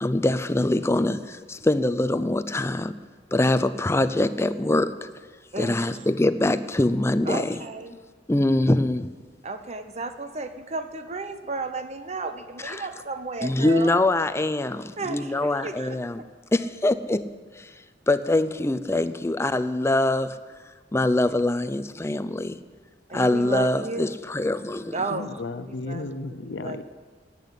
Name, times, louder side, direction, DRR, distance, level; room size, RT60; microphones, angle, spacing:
voice 1, 0.0-2.9 3.3-5.1 5.6-7.6 8.3-9.1 12.6-12.9 13.4-16.2 16.5-17.2 17.6-17.7 18.1-20.4 20.9-22.6 23.1-24.9, left 1 dB, 15° left, 12 dB, 0.5 m, -23 dB
voice 2, 5.5-6.0 7.3-8.0 9.4-14.0 15.0-16.0 23.1-24.1 24.9-25.3 25.7-26.0 26.4-26.8, right 3 dB, 40° right, 9 dB, 0.9 m, -33 dB
voice 3, 25.1-26.8, left 2 dB, 80° left, 12 dB, 0.7 m, -34 dB
10.5 x 8.5 x 10.0 m, 1.4 s
head